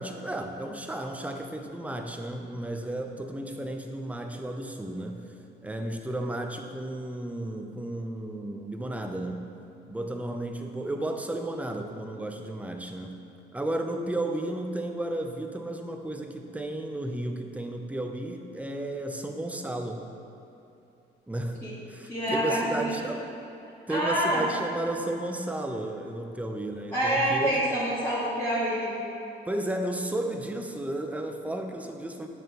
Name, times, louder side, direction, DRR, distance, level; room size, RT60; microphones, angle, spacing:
voice 1, 0.0-5.2 5.6-9.5 9.9-13.2 13.5-20.0 21.3-21.6 21.9-23.3 23.9-27.6 29.5-32.3, right 1 dB, 5° right, 4 dB, 0.6 m, -33 dB
voice 2, 22.1-23.1 23.9-24.5 26.9-28.9, right 1 dB, 15° left, -11 dB, 1.7 m, -27 dB
8.5 x 6.4 x 3.0 m, 2.9 s
cardioid pair, 90°, 20 cm